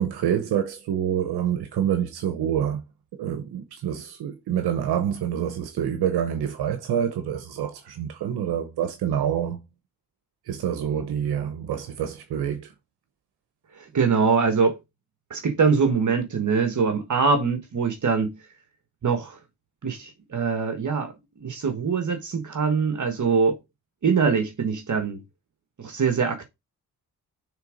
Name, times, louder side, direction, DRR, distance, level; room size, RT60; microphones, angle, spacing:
voice 1, 0.0-2.8 3.2-9.6 10.5-12.7, right 9 dB, 80° right, 0.9 m, -27 dB
voice 2, 13.7-14.7 15.3-18.4 19.0-19.4 19.8-21.1 21.4-23.5 24.0-25.2 25.8-26.5, right 5 dB, 50° right, 1.4 m, -23 dB
6.7 x 3.6 x 5.0 m
cardioid pair, 65°, 38 cm